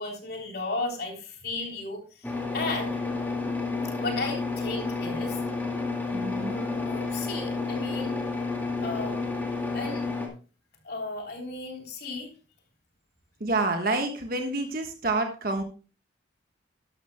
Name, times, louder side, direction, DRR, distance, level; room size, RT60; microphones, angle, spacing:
voice 1, 0.0-3.0 4.0-5.4 6.4-8.1 8.8-9.2 9.7-10.1 10.8-12.3, left 2 dB, 55° left, 1 dB, 3.4 m, -34 dB
sound 1, 2.2-10.3, left 3 dB, 10° left, 2.0 m, -30 dB
voice 2, 6.1-6.5 13.4-15.6, right 2 dB, 50° right, 4 dB, 1.4 m, -28 dB
13.0 x 11.5 x 2.2 m, 0.35 s
head